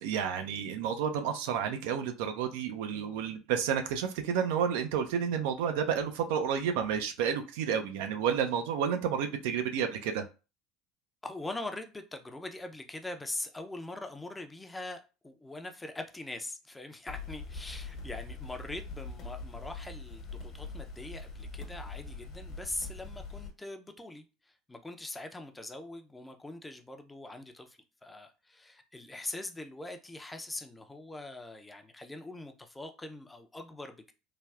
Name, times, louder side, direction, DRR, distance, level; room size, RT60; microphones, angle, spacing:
voice 1, 0.0-10.3, right 7 dB, 70° right, 0.4 m, -31 dB
voice 2, 11.2-24.3 24.7-34.1, left 2 dB, 15° left, 0.5 m, -42 dB
sound 1, 17.1-23.5, left 3 dB, 50° left, 1.0 m, -42 dB
3.2 x 2.3 x 2.3 m
hypercardioid pair, 70°, 0 cm